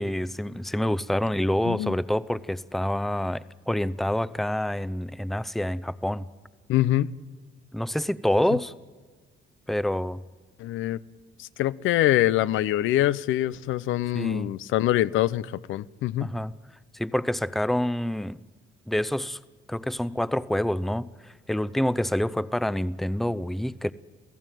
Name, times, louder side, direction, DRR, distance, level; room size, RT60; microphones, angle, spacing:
voice 1, 0.0-6.3 7.7-8.7 9.7-10.2 14.1-14.5 16.2-16.6 16.9-18.4 18.9-19.4 19.7-23.9, left 1 dB, ahead, 0.7 m, -27 dB
voice 2, 6.7-7.1 10.6-11.0 11.4-16.3, left 14 dB, 85° left, 0.7 m, -24 dB
28.0 x 16.0 x 9.2 m
cardioid pair, 90°, 20 cm